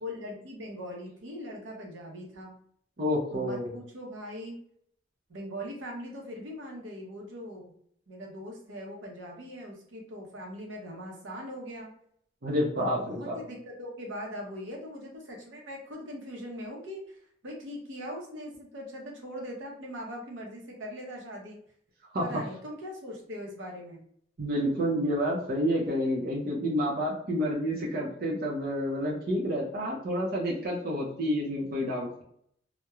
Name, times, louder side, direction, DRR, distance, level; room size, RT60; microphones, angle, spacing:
voice 1, 0.0-2.6 3.3-4.6 5.3-7.7 8.1-11.9 12.7-17.2 17.4-21.6 22.2-24.0, equal, 85° right, 0 dB, 0.7 m, -41 dB
voice 2, 3.0-3.7 12.4-13.4 22.1-22.4 24.4-32.2, equal, 50° right, -3 dB, 0.6 m, -29 dB
2.9 x 2.1 x 2.3 m, 0.67 s
head